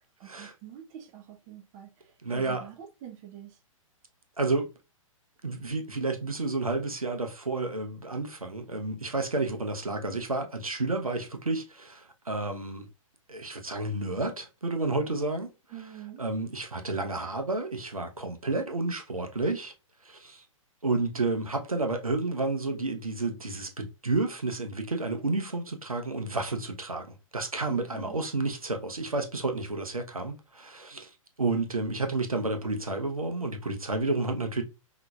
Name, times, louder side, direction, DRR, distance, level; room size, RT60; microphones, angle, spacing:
voice 1, 0.2-3.6 15.7-16.2 27.7-28.2, right 11 dB, 30° right, 0.9 m, -45 dB
voice 2, 2.2-2.7 4.4-4.7 5.4-12.9 13.3-15.5 16.2-19.7 20.0-20.4 20.8-27.1 27.3-31.1 31.4-34.6, right 2 dB, 85° right, 0.9 m, -31 dB
5.7 x 3.0 x 2.4 m
figure-of-eight pair, 115°, 18 cm